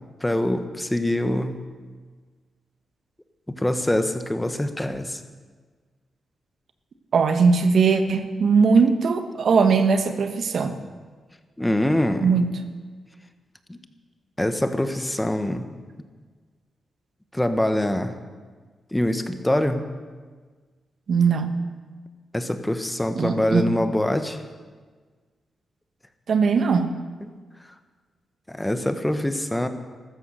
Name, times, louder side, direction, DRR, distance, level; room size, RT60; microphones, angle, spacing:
voice 1, 0.2-1.6 3.6-5.2 11.6-12.3 13.7-13.8 14.4-15.7 17.3-18.1 18.9-19.8 22.3-24.4 27.2-27.3 28.5-29.7, left 1 dB, 10° left, 8 dB, 1.5 m, -24 dB
voice 2, 7.1-10.8 12.2-12.6 21.1-21.6 23.1-23.7 26.3-26.9, right 5 dB, 70° right, 8 dB, 1.3 m, -20 dB
15.0 x 13.5 x 6.7 m, 1.5 s
cardioid pair, 65°, 0 cm